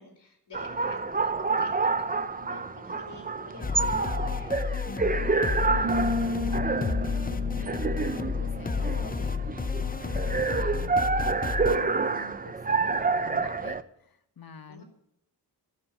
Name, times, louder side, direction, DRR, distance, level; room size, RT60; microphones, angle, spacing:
voice 1, 0.0-4.6 14.7-14.8, left 2 dB, 80° left, 2 dB, 3.0 m, -48 dB
sound 1, 0.5-13.8, right 4 dB, 20° right, 0.6 m, -29 dB
sound 2, 3.6-11.8, left 5 dB, 20° left, 0.6 m, -31 dB
voice 2, 4.9-14.8, left 5 dB, 60° left, 8 dB, 1.3 m, -46 dB
sound 3, 5.8-9.5, left 2 dB, 55° right, 1.6 m, -33 dB
12.5 x 6.7 x 9.9 m, 0.77 s
wide cardioid pair, 90°, 41 cm